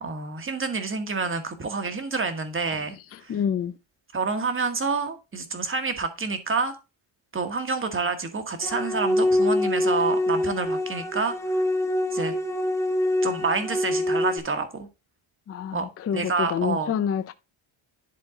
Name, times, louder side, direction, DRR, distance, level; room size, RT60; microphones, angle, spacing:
voice 1, 0.0-3.0 3.2-3.3 4.1-6.7 7.3-11.6 12.1-12.3 13.2-14.9 15.7-15.9 16.1-17.0, right 4 dB, 25° right, 1.3 m, -28 dB
voice 2, 3.3-3.7 15.5-17.3, left 8 dB, 30° left, 0.4 m, -27 dB
sound 1, 8.6-14.4, left 1 dB, 5° left, 0.7 m, -25 dB
11.0 x 3.7 x 3.7 m
cardioid pair, 125°, 49 cm